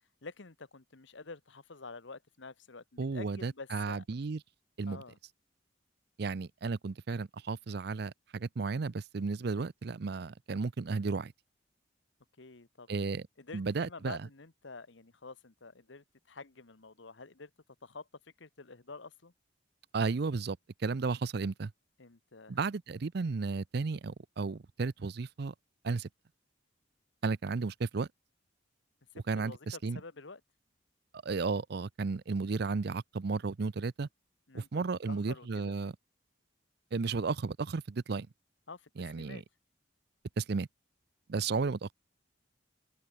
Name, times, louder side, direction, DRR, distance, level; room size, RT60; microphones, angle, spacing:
voice 1, 0.2-4.0 4.9-5.2 12.4-12.9 13.4-17.5 17.8-18.1 18.4-19.3 22.0-22.6 29.4-30.4 34.5-35.8 38.7-38.9 39.1-39.4, left 4 dB, 70° left, 1.3 m, -48 dB
voice 2, 3.0-4.4 4.8-5.0 6.2-11.3 12.9-13.3 13.5-14.2 19.9-21.7 22.5-25.5 25.8-26.1 27.2-28.1 29.3-30.0 31.1-34.1 34.5-35.9 36.9-38.3 39.0-39.4 40.4-40.7 41.3-41.9, right 4 dB, 55° right, 0.5 m, -33 dB
open air
head